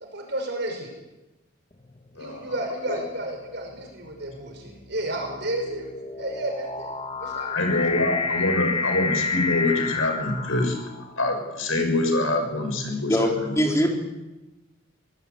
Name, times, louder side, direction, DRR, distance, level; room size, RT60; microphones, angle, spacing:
voice 1, 0.1-0.9 2.2-5.9 6.2-6.9 7.2-7.7, right 1 dB, 55° right, 2 dB, 5.6 m, -32 dB
sound 1, 1.8-2.2 3.0-11.3, left 4 dB, 30° left, 1.4 m, -30 dB
voice 2, 7.5-10.7 11.2-13.1, left 2 dB, 80° left, 5 dB, 6.3 m, -25 dB
voice 3, 13.1-13.9, equal, 15° left, 1 dB, 4.1 m, -22 dB
24.0 x 19.5 x 8.3 m, 1.0 s
head